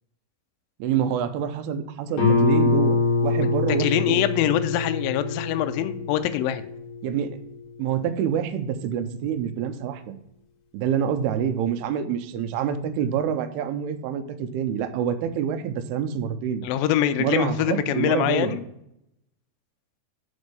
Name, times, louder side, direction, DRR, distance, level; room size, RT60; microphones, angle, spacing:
voice 1, 0.8-4.3 7.0-7.4 7.8-10.1 10.7-16.6 17.2-18.5, right 8 dB, 85° right, 9 dB, 2.6 m, -27 dB
Guitar, 2.2-7.6, left 3 dB, 65° left, 3.0 m, -25 dB
voice 2, 3.8-6.6 16.6-18.6, left 12 dB, 85° left, 10 dB, 2.0 m, -24 dB
5.3 x 5.3 x 6.5 m, 0.78 s
omnidirectional pair, 4.5 m